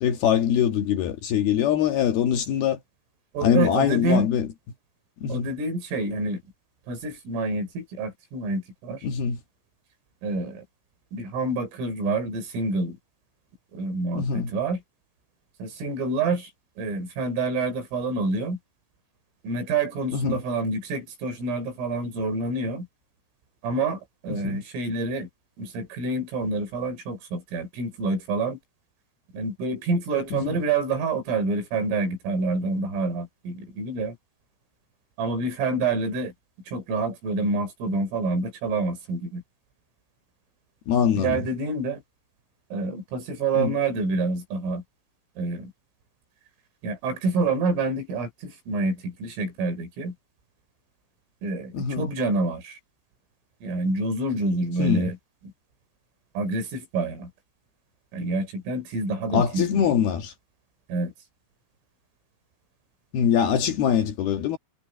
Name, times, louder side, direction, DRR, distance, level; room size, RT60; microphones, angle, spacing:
voice 1, 0.0-2.8 3.4-4.5 5.2-5.5 9.0-9.4 14.1-14.5 20.1-20.4 24.3-24.6 30.3-30.6 40.9-41.5 43.6-43.7 51.7-52.1 54.8-55.1 59.3-60.3 63.1-64.6, left 8 dB, 60° left, 3.0 m, -23 dB
voice 2, 3.3-4.3 5.3-6.4 6.9-9.1 10.2-10.6 11.1-13.0 13.7-14.8 15.6-16.5 16.8-18.6 19.4-22.9 23.6-25.3 25.6-28.6 29.3-34.2 35.2-36.3 36.7-39.4 41.1-42.0 42.7-44.8 45.4-45.7 46.8-50.1 51.4-52.8 53.6-55.2 56.4-57.3 58.1-60.0 60.9-61.1, right 3 dB, 85° right, 8.3 m, -27 dB
omnidirectional pair, 5.7 m